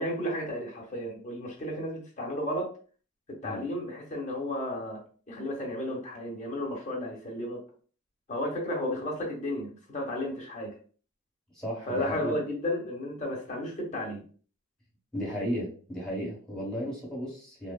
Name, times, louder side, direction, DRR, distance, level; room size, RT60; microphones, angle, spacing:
voice 1, 0.0-2.7 3.3-5.0 5.3-7.6 8.3-10.7 11.9-14.2, left 1 dB, 40° left, -1 dB, 0.8 m, -33 dB
voice 2, 11.5-12.4 15.1-17.7, equal, 5° left, -6 dB, 1.1 m, -34 dB
3.0 x 2.0 x 2.2 m, 0.41 s
head